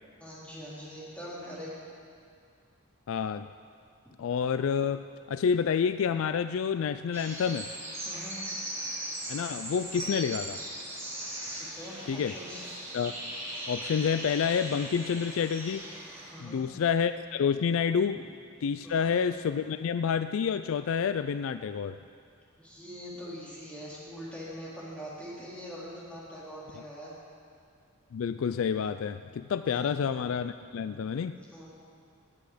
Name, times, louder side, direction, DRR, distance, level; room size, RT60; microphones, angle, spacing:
voice 1, 0.2-1.7 8.0-8.4 11.5-12.7 16.3-16.6 18.8-19.2 22.6-27.1 29.6-29.8 31.5-31.7, equal, 5° left, -8 dB, 3.3 m, -43 dB
voice 2, 3.1-3.5 4.2-7.7 9.3-10.6 12.1-12.3 12.9-13.1 13.7-15.9 16.4-18.2 18.6-22.0 28.1-31.4, left 7 dB, 70° left, 11 dB, 0.3 m, -29 dB
sound 1, 7.1-16.3, right 1 dB, 15° right, 2.6 m, -39 dB
18.0 x 8.5 x 5.0 m, 2.4 s
head